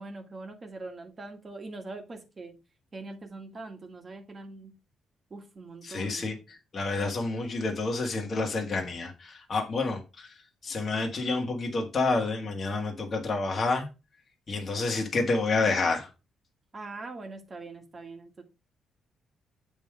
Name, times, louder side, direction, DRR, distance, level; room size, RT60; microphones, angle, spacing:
voice 1, 0.0-2.5 2.9-4.7 5.3-6.4 16.7-18.4, right 3 dB, 30° right, 1.7 m, -42 dB
voice 2, 5.8-13.9 14.5-16.1, left 3 dB, 35° left, 1.6 m, -29 dB
8.0 x 3.7 x 4.8 m
cardioid pair, 115°, 0 cm